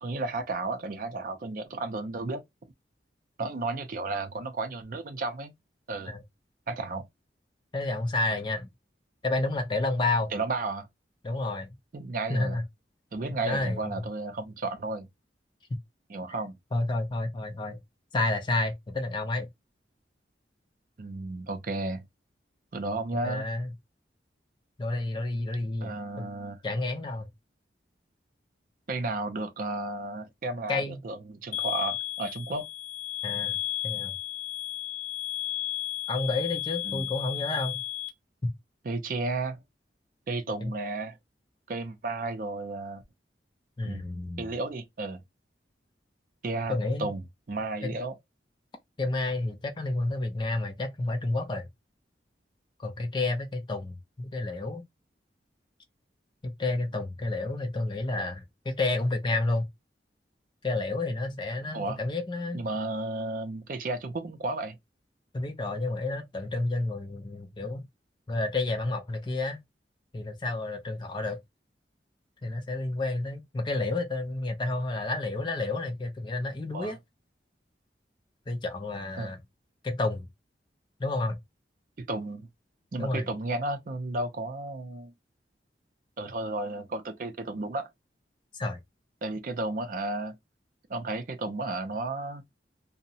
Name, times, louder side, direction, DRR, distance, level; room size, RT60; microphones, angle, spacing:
voice 1, 0.0-2.4 3.4-5.5 5.9-6.1 6.7-7.1 10.3-10.9 11.9-12.6 13.1-15.1 16.1-16.6 21.0-22.0 22.7-23.5 25.8-26.6 28.9-32.7 36.8-37.1 38.8-39.6 40.3-41.2 41.7-43.0 43.8-44.0 44.4-45.2 46.4-47.2 47.5-48.1 61.7-62.0 62.5-64.8 76.7-77.0 79.2-79.3 82.0-82.5 82.9-85.1 86.2-87.9 89.2-90.4 90.9-92.4, right 2 dB, 50° right, 0.4 m, -33 dB
voice 2, 7.7-8.7 9.2-10.3 11.2-11.8 12.3-12.6 13.4-14.0 16.7-17.8 18.1-19.5 23.2-23.7 24.8-26.3 26.6-27.3 30.7-31.0 33.2-33.6 33.8-34.1 36.1-37.8 38.4-38.5 40.6-40.7 43.8-44.4 46.7-47.1 47.8-48.0 49.0-51.7 52.8-54.8 56.4-59.7 60.6-62.6 65.3-67.9 68.3-69.6 70.1-71.4 72.4-77.0 78.5-79.4 79.8-80.3 81.0-81.4 83.0-83.3 88.5-88.8, left 2 dB, 25° left, 0.4 m, -30 dB
sound 1, 31.5-38.1, left 12 dB, 45° left, 0.8 m, -33 dB
2.7 x 2.0 x 2.6 m
head